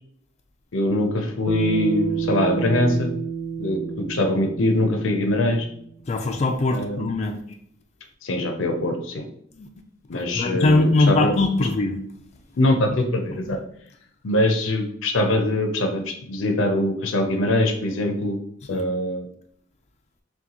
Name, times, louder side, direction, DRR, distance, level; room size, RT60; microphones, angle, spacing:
voice 1, 0.7-3.1 3.6-5.7 6.7-7.1 8.2-9.3 10.1-11.4 12.6-13.6 14.2-18.4 18.7-19.2, left 1 dB, 80° left, 4 dB, 0.6 m, -23 dB
Bass guitar, 1.5-5.9, right 7 dB, 10° right, 0.9 m, -29 dB
voice 2, 6.1-7.4 9.6-9.7 10.1-12.0 13.5-13.6 18.7-18.8, left 2 dB, 35° left, 4 dB, 0.4 m, -21 dB
6.2 x 2.3 x 2.9 m, 0.68 s
head